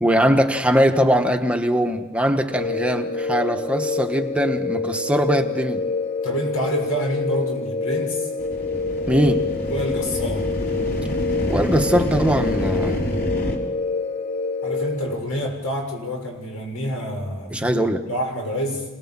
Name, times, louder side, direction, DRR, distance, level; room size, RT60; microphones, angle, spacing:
voice 1, 0.0-5.8 9.1-9.5 11.5-13.2 17.5-18.0, equal, 5° right, 5 dB, 1.1 m, -21 dB
sound 1, 2.5-15.2, left 3 dB, 30° left, 0.8 m, -27 dB
voice 2, 6.2-8.3 9.7-10.5 14.6-18.8, equal, 80° left, 2 dB, 6.7 m, -27 dB
sound 2, 8.4-13.6, left 1 dB, 45° left, 3.8 m, -27 dB
27.0 x 19.0 x 7.4 m, 1.1 s
head